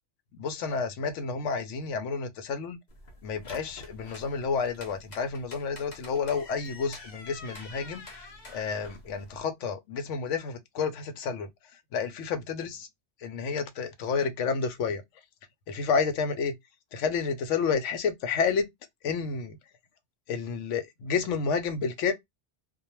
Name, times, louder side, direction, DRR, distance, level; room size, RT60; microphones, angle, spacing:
voice 1, 0.4-2.8 3.2-8.0 8.5-11.5 11.9-12.7 13.2-15.0 15.7-16.5 16.9-18.7 19.0-19.6 20.3-22.1, left 5 dB, 80° left, 0.9 m, -30 dB
sound 1, 2.9-9.4, left 2 dB, 45° left, 0.7 m, -47 dB
2.3 x 2.2 x 2.9 m
omnidirectional pair, 1.3 m